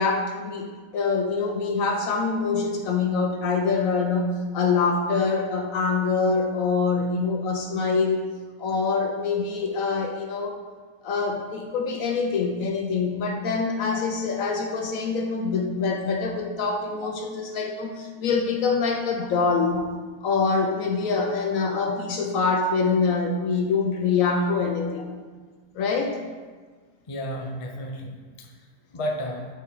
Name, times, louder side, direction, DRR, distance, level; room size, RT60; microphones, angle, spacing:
voice 1, 0.0-8.3 8.6-10.6 11.0-19.9 20.2-25.1 25.7-26.2, left 4 dB, 70° left, 3 dB, 0.9 m, -25 dB
voice 2, 27.1-28.5 28.9-29.5, equal, 45° left, 1 dB, 0.4 m, -32 dB
7.8 x 3.5 x 4.5 m, 1.5 s
omnidirectional pair, 1.8 m